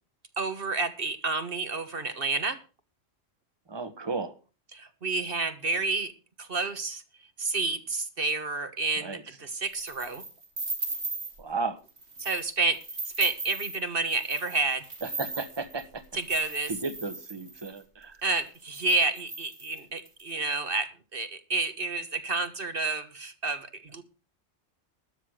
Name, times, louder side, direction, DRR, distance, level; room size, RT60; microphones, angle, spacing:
voice 1, 0.4-2.6 4.7-6.1 6.4-7.0 7.4-10.2 12.2-12.8 13.2-14.8 16.1-16.7 18.2-24.0, right 3 dB, 55° right, 9 dB, 1.5 m, -30 dB
voice 2, 3.7-4.3 9.0-9.2 11.4-11.8 15.0-16.0 16.7-18.2, right 4 dB, 25° right, 11 dB, 1.3 m, -34 dB
sound 1, 9.7-11.4 11.9-12.5 12.7-17.8 18.4-18.5 18.7-20.2, right 3 dB, 75° right, 3.1 m, -37 dB
13.0 x 7.7 x 6.5 m, 0.34 s
omnidirectional pair, 1.2 m